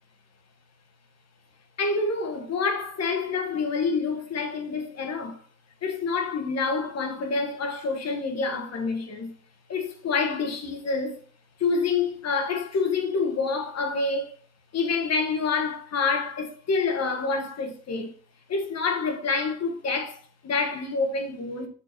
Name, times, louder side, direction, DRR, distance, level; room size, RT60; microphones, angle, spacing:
voice 1, 1.8-5.4 5.8-9.3 9.7-11.2 11.6-14.3 14.7-18.1 18.5-21.7, left 4 dB, 60° left, 1.6 m, -27 dB
7.8 x 4.5 x 4.3 m
cardioid pair, 90°, 30 cm